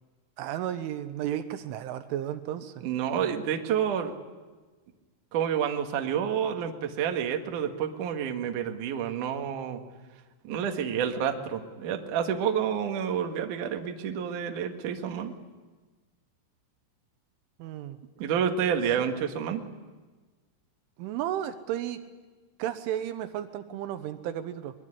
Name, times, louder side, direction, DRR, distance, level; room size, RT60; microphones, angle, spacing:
voice 1, 0.4-2.7 17.6-18.0 19.0-19.1 21.0-22.0 22.6-24.7, right 11 dB, 75° right, 10 dB, 3.3 m, -33 dB
voice 2, 2.8-4.1 5.3-9.8 10.4-15.4 18.2-19.6, right 8 dB, 60° right, 4 dB, 2.3 m, -29 dB
23.0 x 22.5 x 10.0 m, 1.3 s
omnidirectional pair, 5.9 m